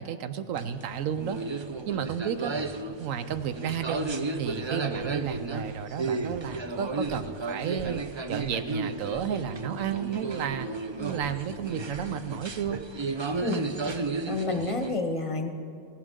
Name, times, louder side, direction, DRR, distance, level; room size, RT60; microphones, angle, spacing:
voice 1, 0.0-1.4 1.9-2.5 3.0-4.1 4.4-8.0 8.3-10.7 11.0-12.8, right 8 dB, 90° right, 11 dB, 1.1 m, -32 dB
sound 1, 0.5-15.0, right 3 dB, 45° right, 0.3 m, -34 dB
voice 2, 13.4-13.7 14.3-15.5, left 3 dB, 30° left, 5 dB, 0.8 m, -29 dB
17.5 x 16.0 x 3.7 m, 2.3 s
omnidirectional pair, 1.3 m